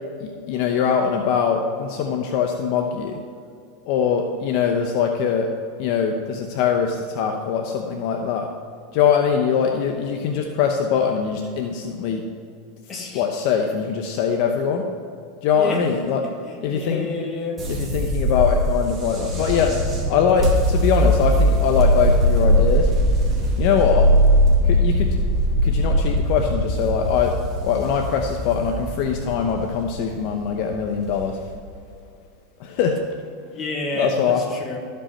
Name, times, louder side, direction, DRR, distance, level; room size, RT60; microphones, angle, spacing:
voice 1, 0.2-3.2 3.9-5.5 5.8-8.5 8.9-12.2 13.1-14.9 15.4-16.2 16.6-17.1 17.7-19.7 20.1-22.9 23.6-24.1 24.6-25.2 25.6-27.3 27.6-31.4 32.6-33.0 34.0-34.4, left 7 dB, 60° left, 3 dB, 0.8 m, -22 dB
voice 2, 12.9-13.3 15.5-15.9 16.2-17.6 33.5-34.8, left 2 dB, 25° left, 0 dB, 1.8 m, -30 dB
sound 1, 17.6-31.8, equal, 20° right, 2.0 m, -20 dB
13.5 x 5.3 x 4.3 m, 2.4 s
supercardioid pair, 120°, 0 cm